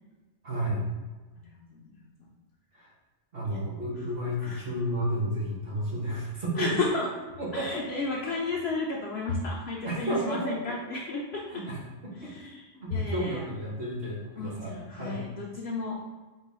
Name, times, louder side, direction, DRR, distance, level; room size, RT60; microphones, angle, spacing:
voice 1, 0.4-0.8 2.7-2.9 3.3-6.8 7.4-7.8 9.8-10.7 11.5-11.8 12.0-12.3 12.7-15.2, right 1 dB, 50° right, -4 dB, 1.0 m, -32 dB
voice 2, 1.4-2.3 3.5-3.6 4.4-4.6 6.5-7.1 7.5-11.6 12.2-13.4 14.3-16.1, left 3 dB, 65° left, -2 dB, 0.7 m, -33 dB
3.9 x 2.2 x 4.1 m, 1.3 s
omnidirectional pair, 1.4 m